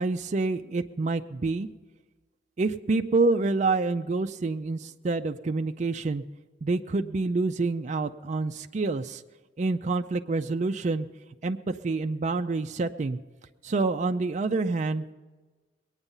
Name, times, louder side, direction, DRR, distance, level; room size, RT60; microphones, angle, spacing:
voice 1, 0.0-1.7 2.6-6.2 6.6-9.2 9.6-11.1 11.4-13.2 13.6-15.1, right 3 dB, 40° right, 7 dB, 0.4 m, -27 dB
21.5 x 8.9 x 5.5 m, 1.3 s
head